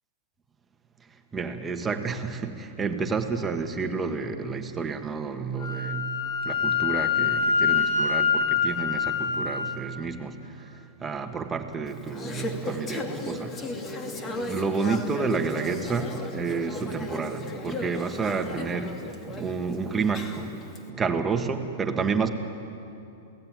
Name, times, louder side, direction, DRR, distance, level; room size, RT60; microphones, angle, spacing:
voice 1, 1.3-13.6 14.5-20.6 20.9-22.3, right 5 dB, 15° right, 5 dB, 1.7 m, -30 dB
Wind instrument woodwind instrument, 5.6-9.8, left 6 dB, 60° left, 3.4 m, -25 dB
Conversation / Chatter, 11.9-20.8, left 2 dB, 25° left, 2.4 m, -36 dB
28.0 x 17.5 x 9.3 m, 2.7 s
hypercardioid pair, 140°, 0 cm